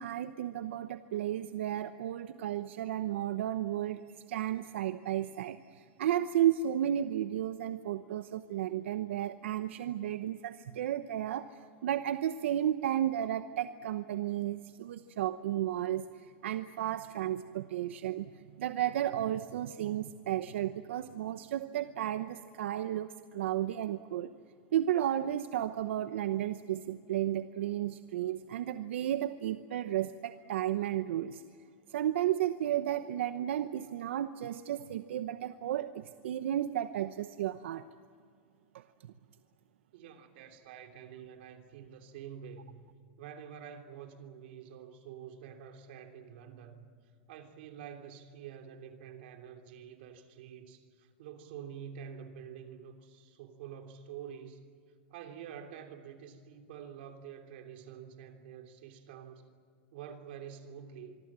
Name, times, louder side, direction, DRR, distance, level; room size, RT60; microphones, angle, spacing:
voice 1, 0.0-4.0 4.3-24.3 24.7-31.4 31.9-37.8 38.7-39.1, right 11 dB, 85° right, 10 dB, 0.9 m, -33 dB
voice 2, 39.9-42.8 43.2-46.9 47.3-54.6 55.1-59.4 59.9-61.2, right 8 dB, 60° right, 5 dB, 3.2 m, -48 dB
25.5 x 23.5 x 7.6 m, 2.2 s
supercardioid pair, 165°, 6 cm